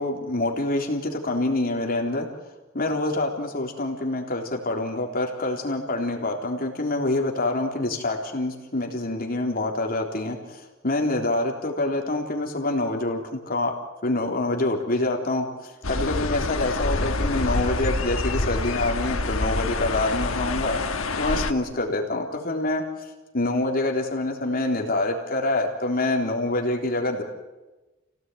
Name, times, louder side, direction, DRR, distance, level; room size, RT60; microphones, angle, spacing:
voice 1, 0.0-2.3 2.7-13.7 14.0-20.8 21.2-22.8 23.3-27.2, left 2 dB, 45° left, 1 dB, 3.7 m, -26 dB
sound 1, 15.8-21.5, left 2 dB, 85° left, 1.5 m, -26 dB
29.5 x 17.5 x 9.4 m, 1.1 s
head